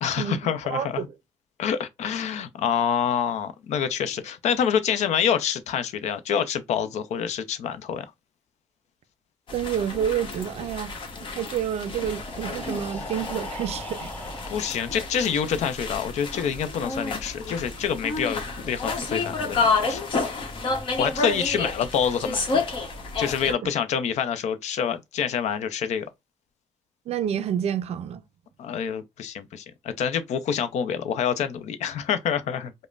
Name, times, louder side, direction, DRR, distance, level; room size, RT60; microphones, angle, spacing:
voice 1, 0.0-1.1 1.6-8.0 14.5-20.0 21.0-22.7 23.2-26.1 28.6-32.7, left 8 dB, 80° left, 0.6 m, -27 dB
voice 2, 0.7-1.1 9.5-11.0 11.3-14.1 23.5-23.7 27.1-28.2, right 9 dB, 65° right, 0.4 m, -29 dB
sound 1, 9.5-23.5, left 3 dB, 45° left, 1.0 m, -30 dB
Breathing, 11.8-15.7, left 1 dB, 15° left, 0.6 m, -40 dB
5.1 x 2.1 x 2.4 m
cardioid pair, 130°, 12 cm